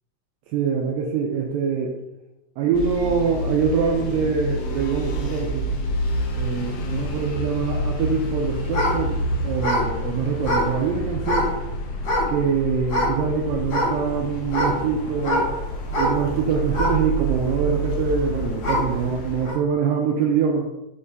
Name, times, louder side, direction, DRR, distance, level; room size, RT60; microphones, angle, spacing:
voice 1, 0.5-2.0 2.6-5.7 6.3-11.5 12.3-15.5 15.9-20.7, right 6 dB, 80° right, 0 dB, 2.2 m, -24 dB
sound 1, 2.7-19.5, equal, 75° left, 1.9 m, -28 dB
sound 2, 8.6-11.6 12.0-12.5 12.8-13.2 13.7-19.0 19.4-19.5, left 1 dB, 60° left, 2.2 m, -25 dB
5.4 x 2.5 x 3.3 m, 0.94 s
omnidirectional pair, 4.1 m